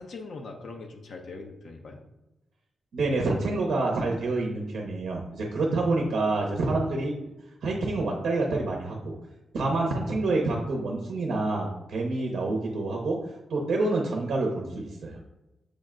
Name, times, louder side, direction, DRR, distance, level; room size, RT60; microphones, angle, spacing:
voice 1, 0.0-2.0, left 3 dB, 75° left, 2 dB, 0.6 m, -41 dB
voice 2, 2.9-7.1 7.6-9.1 9.5-13.2 13.5-15.2, right 2 dB, 75° right, 0 dB, 0.7 m, -27 dB
6.5 x 2.2 x 3.7 m, 0.99 s
cardioid pair, 55°, 0 cm